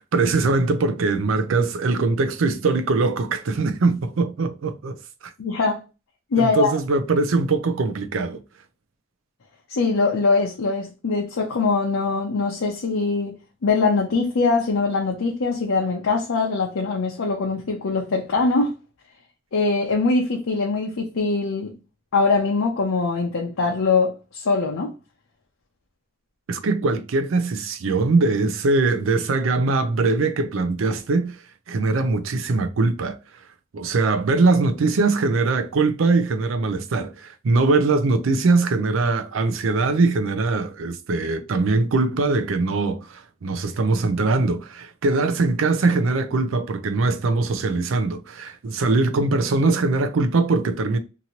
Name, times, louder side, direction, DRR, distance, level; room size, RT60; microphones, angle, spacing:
voice 1, 0.0-5.0 5.2-5.3 6.4-8.4 26.5-31.4 31.7-33.2 33.7-51.0, right 3 dB, 75° right, 0.5 m, -21 dB
voice 2, 5.4-5.8 6.3-6.8 9.7-18.7 19.5-21.7 22.1-24.9, left 4 dB, 80° left, 0.6 m, -22 dB
2.9 x 2.6 x 2.8 m
head